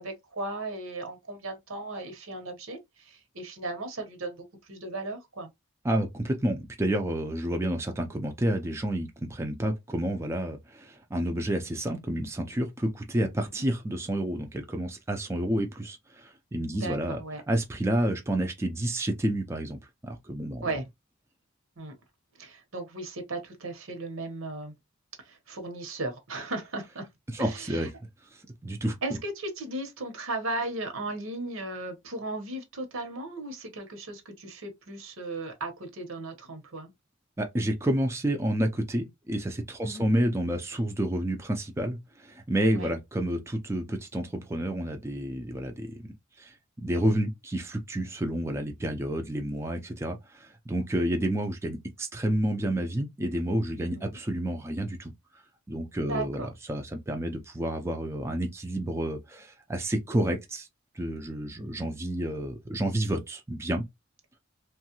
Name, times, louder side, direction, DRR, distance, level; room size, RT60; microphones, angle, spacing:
voice 1, 0.0-5.5 13.5-13.6 16.7-17.4 20.6-20.8 21.8-21.9 22.4-24.7 25.2-27.0 27.4-27.9 29.0-36.9 39.8-40.1 42.7-42.9 53.9-54.2 56.1-56.5 61.6-61.9, right 2 dB, 80° right, 1.0 m, -36 dB
voice 2, 5.8-17.2 17.5-19.8 20.0-20.8 27.3-27.9 28.3-29.0 37.4-46.0 46.4-55.1 55.7-60.7 61.0-63.8, right 1 dB, 15° right, 0.4 m, -30 dB
3.0 x 2.3 x 2.9 m
head